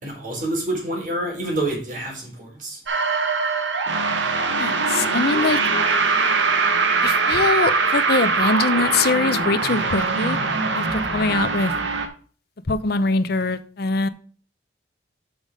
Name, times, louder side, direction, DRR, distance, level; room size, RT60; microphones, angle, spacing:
voice 1, 0.0-2.8, right 1 dB, 45° right, 3.5 m, -27 dB
sound 1, 2.9-12.1, right 4 dB, 75° right, 1.1 m, -22 dB
voice 2, 4.6-5.6 7.0-10.4 10.7-11.7 12.7-14.1, left 3 dB, 55° left, 0.7 m, -22 dB
7.1 x 5.5 x 4.9 m
head